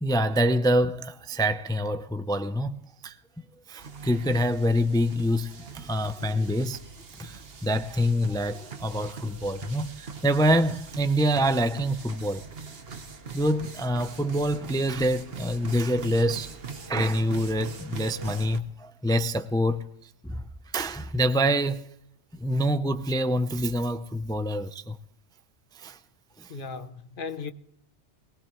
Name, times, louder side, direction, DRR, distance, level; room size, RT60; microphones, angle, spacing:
voice 1, 0.0-3.1 3.7-6.8 7.2-12.4 13.3-16.6 16.9-19.9 20.2-20.4 20.7-21.9 22.3-25.0 25.7-26.0 26.4-26.5, equal, 5° left, 0.4 m, -26 dB
sound 1, 3.8-18.6, right 5 dB, 55° right, 1.4 m, -42 dB
voice 2, 26.5-27.5, left 5 dB, 50° left, 1.0 m, -36 dB
22.5 x 19.5 x 3.1 m
omnidirectional pair, 1.2 m